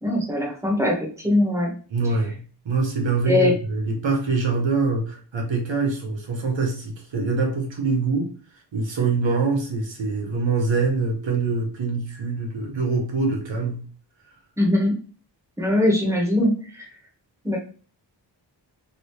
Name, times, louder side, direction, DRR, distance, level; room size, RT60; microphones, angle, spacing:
voice 1, 0.0-1.7 3.3-3.5 14.6-15.0 15.6-16.9 17.4-17.6, left 1 dB, 5° right, -1 dB, 1.1 m, -21 dB
voice 2, 1.9-8.3 8.7-13.9, right 4 dB, 85° right, 2 dB, 0.9 m, -24 dB
3.0 x 2.8 x 3.1 m, 0.40 s
wide cardioid pair, 80°, 44 cm